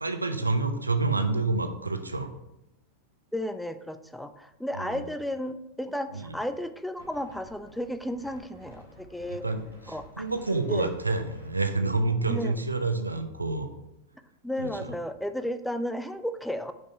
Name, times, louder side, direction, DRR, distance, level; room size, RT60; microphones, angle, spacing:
voice 1, 0.0-2.3 4.8-5.0 6.1-6.3 9.3-9.6 10.2-13.7 14.6-14.9, right 3 dB, 80° right, 8 dB, 0.5 m, -28 dB
voice 2, 3.3-9.4 9.9-10.3 10.7-10.9 12.3-12.6 14.4-16.7, left 1 dB, ahead, 10 dB, 0.3 m, -33 dB
Wind, 7.0-12.5, right 1 dB, 80° left, 1.8 m, -52 dB
5.4 x 4.4 x 4.5 m, 0.92 s
figure-of-eight pair, 90°, 0 cm